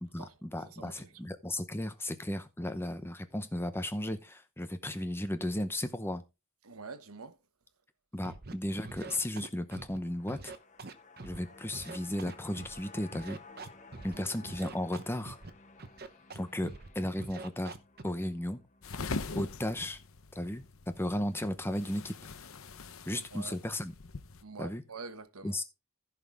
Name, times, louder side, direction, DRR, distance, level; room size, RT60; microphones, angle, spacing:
voice 1, 0.0-6.2 8.1-10.5 11.2-13.4 14.0-15.4 16.3-17.8 18.0-18.6 19.3-20.0 20.3-20.6 21.0-22.5 23.1-23.9 24.6-24.8 25.4-25.6, left 1 dB, 10° left, 0.8 m, -35 dB
voice 2, 0.6-1.1 6.6-7.4 14.1-14.5 23.1-23.6 24.4-25.6, right 4 dB, 75° right, 1.2 m, -46 dB
Scratching (performance technique), 8.2-8.5 8.8-10.0 10.3-11.4 11.7-12.8 13.1-14.2 14.5-15.5 15.8-16.4 16.6-16.9 17.2-18.0, right 3 dB, 45° right, 0.9 m, -44 dB
sound 1, 9.8-20.2 20.5-20.6, left 4 dB, 35° left, 1.0 m, -55 dB
sound 2, 18.8-24.4, left 3 dB, 65° left, 0.8 m, -42 dB
15.0 x 5.8 x 3.5 m
head